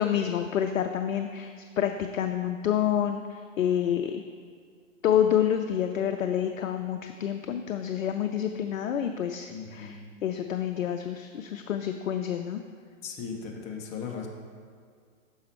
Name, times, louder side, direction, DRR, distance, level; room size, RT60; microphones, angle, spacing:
voice 1, 0.0-4.2 5.0-12.6, left 9 dB, 75° left, 6 dB, 0.5 m, -28 dB
voice 2, 9.5-10.0 13.0-14.3, left 6 dB, 15° left, 1 dB, 0.6 m, -37 dB
6.3 x 5.6 x 4.3 m, 2.1 s
figure-of-eight pair, 115°, 40 cm